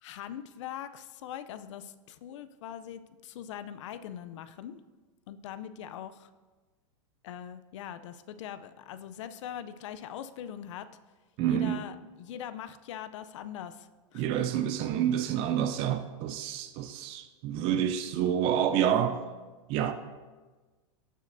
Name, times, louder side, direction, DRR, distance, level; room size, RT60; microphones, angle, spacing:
voice 1, 0.0-4.8 5.3-6.3 7.2-10.9 11.5-14.2, left 10 dB, 65° left, 0.5 m, -42 dB
voice 2, 11.4-11.8 14.1-19.2 19.7-19.9, right 9 dB, 35° right, 0.4 m, -28 dB
15.5 x 6.4 x 2.6 m
supercardioid pair, 150°, 17 cm